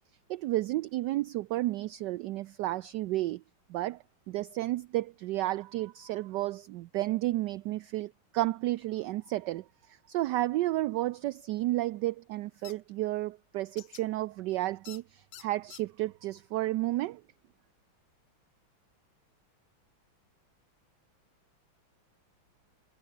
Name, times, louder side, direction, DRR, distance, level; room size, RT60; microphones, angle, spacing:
voice 1, 0.3-3.4 3.7-4.0 4.3-9.6 10.1-17.2, right 16 dB, 75° right, 1.0 m, -32 dB
sound 1, 12.6-12.7 13.8-14.0 14.9-15.0 15.3-15.8, left 11 dB, 80° left, 2.0 m, -47 dB
omnidirectional pair, 2.2 m